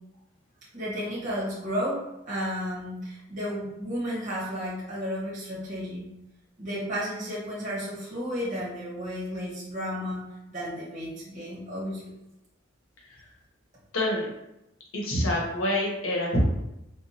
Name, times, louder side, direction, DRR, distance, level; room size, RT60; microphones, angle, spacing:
voice 1, 0.7-2.0 2.3-6.1 6.6-10.2 10.5-12.1, equal, 40° right, -7 dB, 1.1 m, -33 dB
voice 2, 13.9-14.3 14.9-16.4, left 1 dB, 85° left, -2 dB, 0.8 m, -26 dB
2.9 x 2.2 x 2.7 m, 0.87 s
head